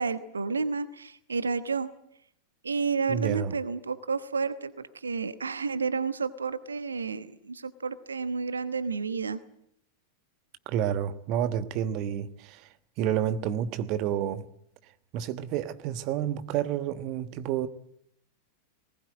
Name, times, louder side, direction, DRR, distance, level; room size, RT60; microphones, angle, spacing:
voice 1, 0.0-1.9 2.6-9.4, right 5 dB, 75° right, 1.1 m, -31 dB
voice 2, 3.1-3.5 10.7-12.7 13.0-14.5 15.1-17.7, right 10 dB, 40° right, 1.2 m, -29 dB
20.0 x 19.5 x 9.1 m
figure-of-eight pair, 90°, 0 cm